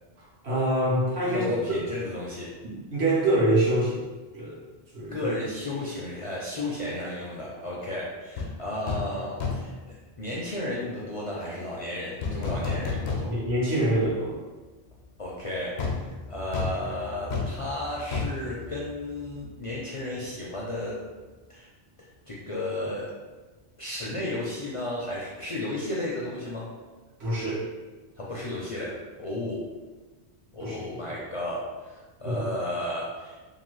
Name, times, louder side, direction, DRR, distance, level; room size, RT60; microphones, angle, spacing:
voice 1, 0.4-1.5 2.6-4.1 4.3-4.5 4.9-5.3 13.2-14.4 27.2-27.6 30.6-31.0 32.2-32.5, right 1 dB, 75° right, -6 dB, 1.2 m, -25 dB
voice 2, 1.3-2.5 5.1-9.7 10.2-13.3 15.2-15.8 16.0-21.0 21.5-21.7 22.3-23.1 23.8-26.7 28.2-29.6 30.5-33.4, left 1 dB, 50° left, -6 dB, 0.4 m, -33 dB
sound 1, 8.4-8.5 8.9-9.1 9.4-9.8 12.2-13.6 14.0-14.1 15.8-19.4 19.7-19.9, left 4 dB, 90° left, 0.9 m, -31 dB
2.8 x 2.4 x 3.0 m, 1.3 s
omnidirectional pair, 1.1 m